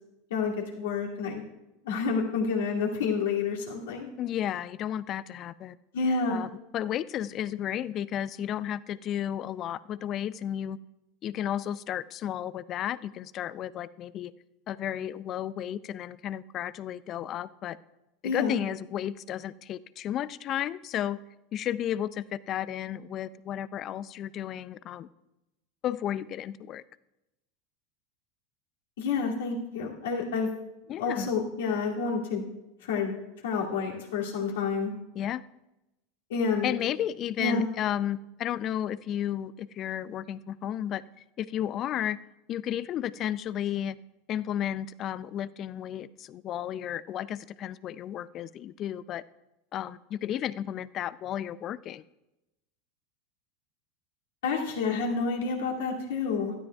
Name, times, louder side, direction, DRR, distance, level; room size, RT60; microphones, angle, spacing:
voice 1, 0.3-1.4 1.8-4.1 5.9-6.4 18.2-18.6 29.0-30.5 31.0-32.4 32.8-33.1 33.4-34.9 36.3-36.7 37.4-37.7 54.4-56.5, left 5 dB, 70° left, -2 dB, 2.5 m, -29 dB
voice 2, 4.2-5.8 6.3-10.8 11.2-14.3 14.7-17.8 18.3-21.2 21.5-25.1 25.8-26.8 30.9-31.3 35.2-35.4 36.6-41.0 41.4-42.2 42.5-44.0 44.3-49.2 49.7-52.0, left 11 dB, 40° left, 18 dB, 0.4 m, -33 dB
17.0 x 12.5 x 2.3 m, 0.94 s
hypercardioid pair, 85°, 0 cm